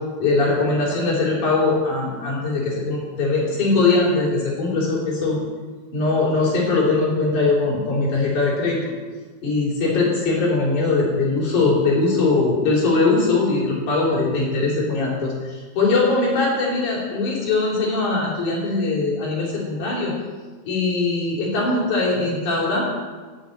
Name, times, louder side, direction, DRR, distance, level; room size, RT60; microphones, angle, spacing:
voice 1, 0.2-5.4 5.9-8.8 9.4-20.1 20.7-22.8, left 3 dB, 60° left, -3 dB, 4.6 m, -21 dB
13.5 x 6.0 x 9.0 m, 1.4 s
omnidirectional pair, 3.9 m